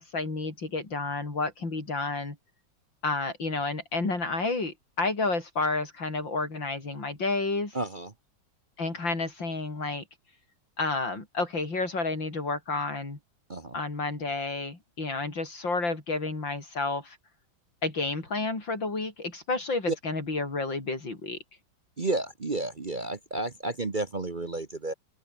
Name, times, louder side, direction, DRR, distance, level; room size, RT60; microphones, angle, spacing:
voice 1, 0.0-2.4 3.0-7.8 8.8-10.0 10.8-13.2 13.7-17.2 17.8-21.4, left 3 dB, 80° left, 6.1 m, -30 dB
voice 2, 7.7-8.1 13.5-13.7 19.9-20.0 22.0-24.9, right 2 dB, 30° right, 1.2 m, -31 dB
open air
omnidirectional pair, 2.0 m